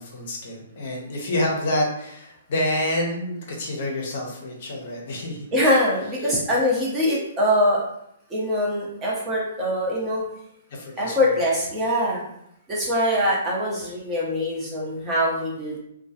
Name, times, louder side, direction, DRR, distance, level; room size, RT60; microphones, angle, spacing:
voice 1, 0.0-5.5 6.2-6.3 10.7-11.2, left 1 dB, 55° left, -1 dB, 0.7 m, -28 dB
voice 2, 5.5-7.8 8.3-10.2 11.0-12.2 12.7-15.8, equal, 20° right, -5 dB, 0.8 m, -23 dB
2.2 x 2.2 x 2.7 m, 0.76 s
hypercardioid pair, 125°, 0 cm